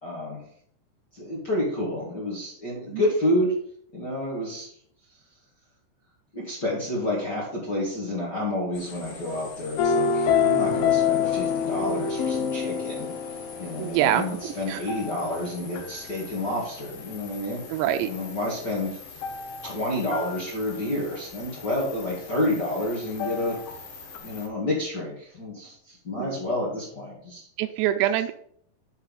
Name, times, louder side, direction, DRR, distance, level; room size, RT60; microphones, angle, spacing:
voice 1, 0.0-0.4 1.1-3.6 3.9-4.7 6.3-13.1 13.6-17.6 18.0-19.0 19.6-23.6 24.2-27.5, left 1 dB, 40° left, -5 dB, 1.7 m, -29 dB
sound 1, 8.7-24.5, left 4 dB, 60° left, 3.5 m, -45 dB
sound 2, 9.8-16.0 19.2-19.8 20.1-20.4 23.2-23.8 24.1-24.2, left 6 dB, 85° left, 2.0 m, -26 dB
voice 2, 13.8-14.8 17.7-18.1 26.2-26.3 27.6-28.3, right 11 dB, 85° right, 9 dB, 2.7 m, -25 dB
7.1 x 5.8 x 5.4 m, 0.64 s
omnidirectional pair, 5.1 m